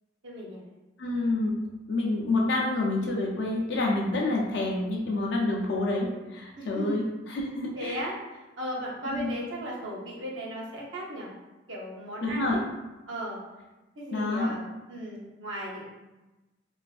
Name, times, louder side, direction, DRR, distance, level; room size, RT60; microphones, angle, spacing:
voice 1, 0.2-0.6 6.6-7.0 7.8-11.3 11.7-12.6 13.1-13.4 14.0-15.9, equal, 75° right, -4 dB, 0.6 m, -36 dB
voice 2, 1.0-1.6 1.9-7.0 7.3-8.0 9.1-9.3 12.2-12.6 14.1-14.5, left 2 dB, 60° left, -2 dB, 0.3 m, -28 dB
2.4 x 2.4 x 2.3 m, 1.1 s
head